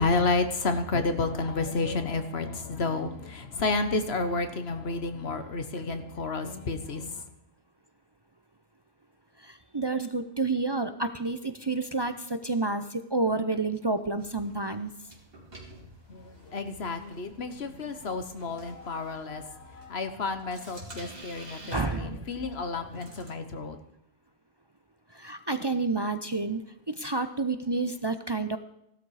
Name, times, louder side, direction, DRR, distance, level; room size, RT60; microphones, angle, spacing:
voice 1, 0.0-7.2 16.1-23.8, left 3 dB, 75° left, 9 dB, 1.5 m, -31 dB
voice 2, 9.4-14.9 21.7-22.2 25.1-26.6 26.9-28.6, right 3 dB, 30° right, 9 dB, 0.6 m, -29 dB
sound 1, 14.0-23.3, right 1 dB, 60° right, 3.1 m, -51 dB
16.0 x 12.5 x 4.9 m, 0.77 s
omnidirectional pair, 1.1 m